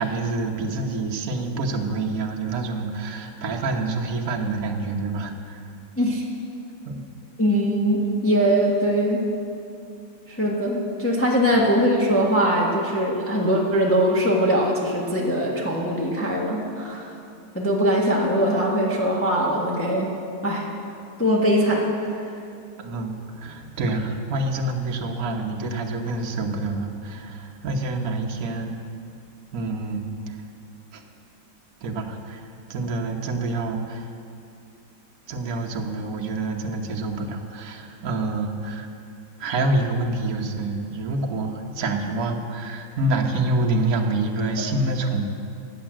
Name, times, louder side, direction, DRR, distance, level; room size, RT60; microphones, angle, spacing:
voice 1, 0.0-5.7 6.8-7.0 11.5-11.6 22.8-28.8 29.5-30.4 30.9-31.0 31.8-34.1 35.3-38.9 39.4-45.2, right 2 dB, 60° right, 2 dB, 1.5 m, -27 dB
voice 2, 7.4-9.3 10.3-17.1 17.5-20.1 20.4-20.7 21.2-21.9, equal, 10° left, -3 dB, 1.3 m, -21 dB
15.0 x 9.6 x 7.6 m, 2.6 s
omnidirectional pair, 1.8 m